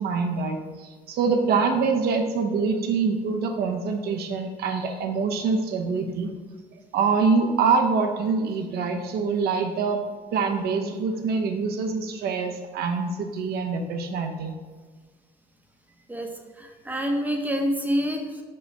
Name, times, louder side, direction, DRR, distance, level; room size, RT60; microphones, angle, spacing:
voice 1, 0.0-6.3 6.9-10.0 10.3-14.5, right 4 dB, 70° right, 4 dB, 0.9 m, -25 dB
voice 2, 16.6-18.4, equal, 10° right, 3 dB, 0.9 m, -27 dB
5.4 x 5.2 x 3.4 m, 1.4 s
cardioid pair, 110°, 17 cm